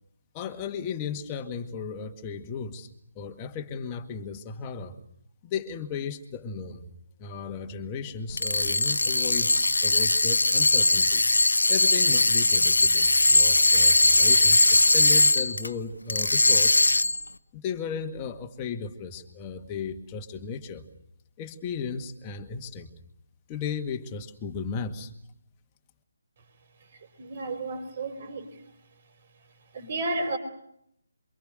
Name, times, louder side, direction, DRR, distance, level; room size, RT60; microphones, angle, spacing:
voice 1, 0.3-2.9 3.2-5.0 5.4-6.9 7.2-11.2 11.7-16.8 17.5-20.8 21.4-22.9 23.5-25.1, left 6 dB, 20° left, 1.9 m, -35 dB
sound 1, 8.3-15.7 16.1-17.3, left 2 dB, 70° left, 1.1 m, -20 dB
voice 2, 26.9-28.5 29.7-30.4, right 2 dB, 35° right, 4.3 m, -32 dB
27.5 x 24.5 x 6.5 m
figure-of-eight pair, 150°, 0 cm